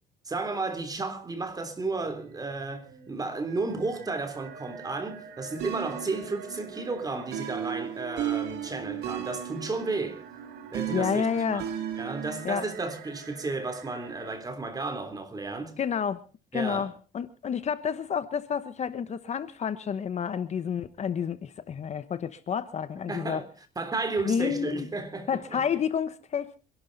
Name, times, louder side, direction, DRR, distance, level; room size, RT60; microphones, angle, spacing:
voice 1, 0.3-10.3 10.7-11.6 12.0-15.8 16.5-16.9 23.1-23.5 23.8-25.7, right 3 dB, 20° right, 3.5 m, -33 dB
sound 1, 1.8-14.3, right 6 dB, 65° right, 3.4 m, -47 dB
sound 2, 5.6-12.4, right 10 dB, 80° right, 2.7 m, -35 dB
voice 2, 10.9-11.6 12.4-12.6 15.8-16.2 16.5-23.4 24.3-24.9 25.3-26.6, left 7 dB, 40° left, 1.1 m, -30 dB
26.0 x 12.0 x 4.1 m
cardioid pair, 110°, 17 cm